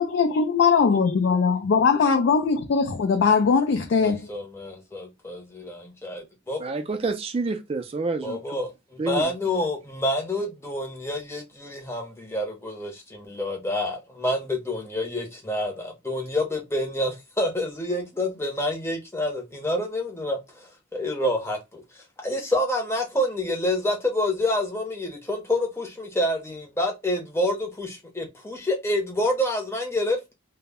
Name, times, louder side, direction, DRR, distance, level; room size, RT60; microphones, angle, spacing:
voice 1, 0.0-4.2, left 5 dB, 60° left, 0.3 m, -20 dB
voice 2, 4.0-6.6 8.2-30.3, left 1 dB, 15° left, 0.6 m, -28 dB
voice 3, 6.6-8.6 9.0-9.3, right 3 dB, 30° right, 0.3 m, -28 dB
2.0 x 2.0 x 3.4 m
head